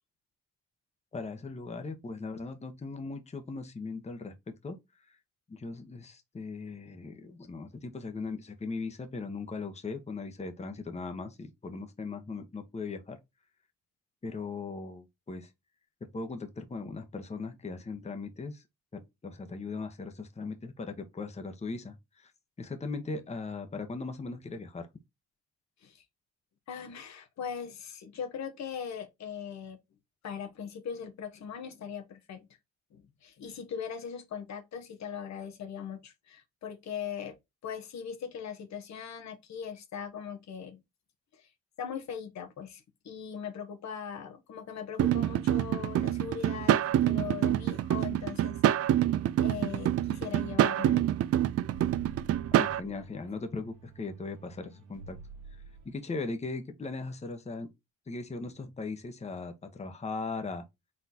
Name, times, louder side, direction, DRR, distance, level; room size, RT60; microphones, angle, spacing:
voice 1, 1.1-4.3 4.6-5.2 5.5-13.2 14.2-15.5 16.1-18.6 18.9-22.3 22.6-24.9 52.5-55.2 55.5-57.7 58.1-60.6, left 3 dB, 20° left, 0.9 m, -39 dB
voice 2, 26.7-29.8 30.2-32.5 32.9-37.4 37.6-40.8 41.3-41.5 41.8-48.6 48.9-51.1, left 7 dB, 65° left, 1.1 m, -40 dB
sound 1, 45.0-52.8, right 12 dB, 55° right, 0.4 m, -26 dB
sound 2, 50.9-55.9, right 4 dB, 85° right, 1.3 m, -50 dB
4.2 x 3.8 x 2.7 m
cardioid pair, 90°, 30 cm